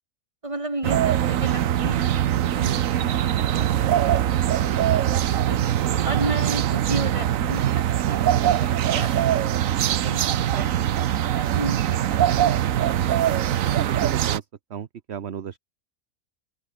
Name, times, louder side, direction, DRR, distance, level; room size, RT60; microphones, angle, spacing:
voice 1, 0.4-2.2 2.5-5.6 6.0-9.5 10.0-10.3 10.5-11.0 11.3-12.9, right 2 dB, 25° right, 3.1 m, -34 dB
sound 1, 0.8-14.4, right 11 dB, 80° right, 1.2 m, -22 dB
voice 2, 13.6-14.4 14.7-15.6, right 8 dB, 55° right, 1.2 m, -34 dB
open air
omnidirectional pair, 1.4 m